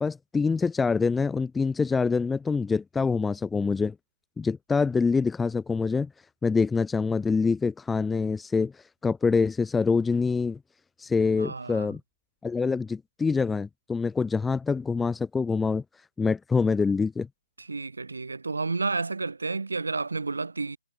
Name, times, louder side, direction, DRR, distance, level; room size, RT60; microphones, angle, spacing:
voice 1, 0.0-3.9 4.4-6.1 6.4-10.6 11.0-12.0 12.4-15.8 16.2-17.3, left 4 dB, 5° left, 0.4 m, -25 dB
voice 2, 11.4-11.9 17.6-20.8, right 3 dB, 80° right, 2.3 m, -31 dB
hypercardioid pair, 150°, 0 cm